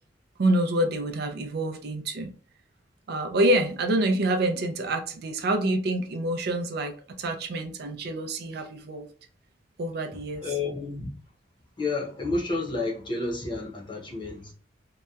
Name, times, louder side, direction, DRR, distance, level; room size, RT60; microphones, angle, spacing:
voice 1, 0.4-2.3 3.1-9.1 9.8-10.4 14.1-14.2, right 1 dB, 60° right, 0.4 m, -27 dB
voice 2, 10.3-11.1 11.8-14.5, left 3 dB, 25° left, 0.7 m, -30 dB
2.8 x 2.1 x 2.3 m
head